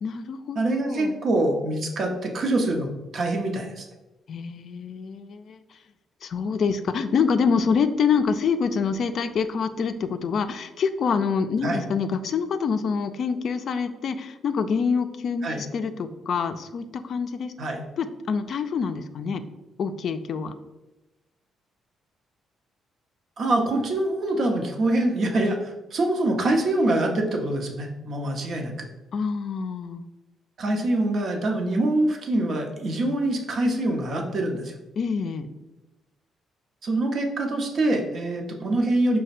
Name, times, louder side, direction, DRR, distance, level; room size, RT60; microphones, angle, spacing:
voice 1, 0.0-0.6 0.8-1.2 4.3-5.6 6.2-17.5 18.0-19.4 19.8-20.6 29.1-30.0 35.0-35.5, left 5 dB, 60° left, 9 dB, 0.3 m, -26 dB
voice 2, 0.6-2.9 3.1-3.9 11.6-11.8 15.4-15.6 17.6-17.8 23.4-28.9 30.6-34.7 36.8-39.2, right 1 dB, 60° right, 2 dB, 0.8 m, -24 dB
5.0 x 2.2 x 4.1 m, 1.0 s
cardioid pair, 90°, 0 cm